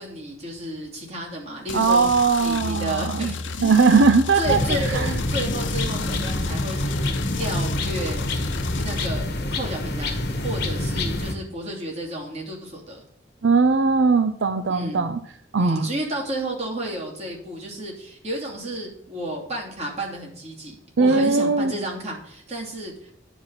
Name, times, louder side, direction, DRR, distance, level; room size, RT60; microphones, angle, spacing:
voice 1, 0.0-3.8 4.3-8.3 8.8-9.3 9.5-13.0 14.7-15.1 15.6-23.1, right 1 dB, 35° right, -2 dB, 2.7 m, -32 dB
sound 1, 1.7-9.1, left 3 dB, 90° left, 0.8 m, -32 dB
voice 2, 1.7-3.3 3.6-4.6 4.9-5.1 13.4-15.2 15.5-15.8 21.0-21.7, right 4 dB, 75° right, 10 dB, 0.6 m, -19 dB
sound 2, 4.4-11.3, left 1 dB, 60° left, 1.5 m, -27 dB
9.9 x 4.9 x 7.5 m, 0.68 s
head